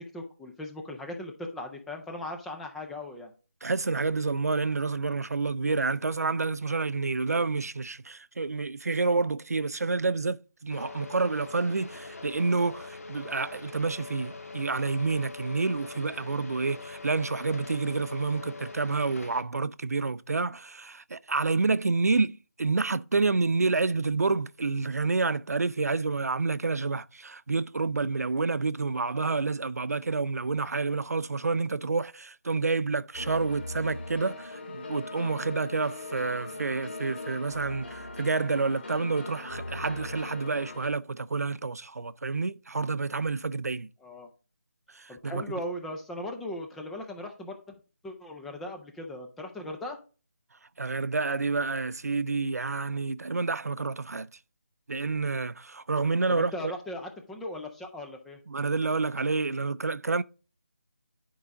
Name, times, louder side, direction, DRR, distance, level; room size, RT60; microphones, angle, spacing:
voice 1, 0.1-3.3 44.0-44.3 45.1-47.6 48.0-50.0 56.3-58.4, left 1 dB, ahead, 0.3 m, -38 dB
voice 2, 3.6-43.9 44.9-45.4 50.8-54.3 54.9-56.7 58.5-60.2, right 4 dB, 80° right, 0.5 m, -29 dB
sound 1, 10.7-19.4, left 4 dB, 70° left, 1.5 m, -43 dB
sound 2, 33.1-40.9, left 2 dB, 40° left, 2.0 m, -40 dB
10.0 x 4.8 x 3.9 m
figure-of-eight pair, 165°, 8 cm